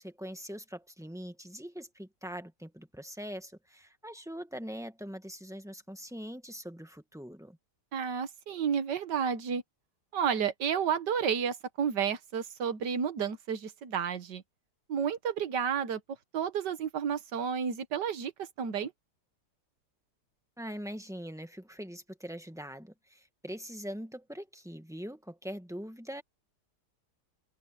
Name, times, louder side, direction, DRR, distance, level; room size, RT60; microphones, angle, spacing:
voice 1, 0.0-7.6 20.6-26.2, equal, ahead, 1.7 m, -42 dB
voice 2, 7.9-9.6 10.1-14.4 14.9-16.0 16.3-18.9, right 7 dB, 90° right, 1.9 m, -31 dB
open air
omnidirectional pair, 1.8 m